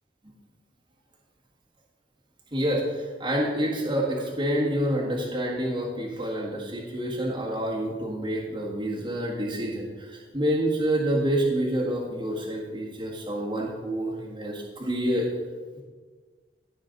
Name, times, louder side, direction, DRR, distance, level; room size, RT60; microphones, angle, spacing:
voice 1, 2.5-15.3, right 1 dB, 30° right, -4 dB, 1.8 m, -28 dB
16.5 x 6.4 x 4.0 m, 1.4 s
head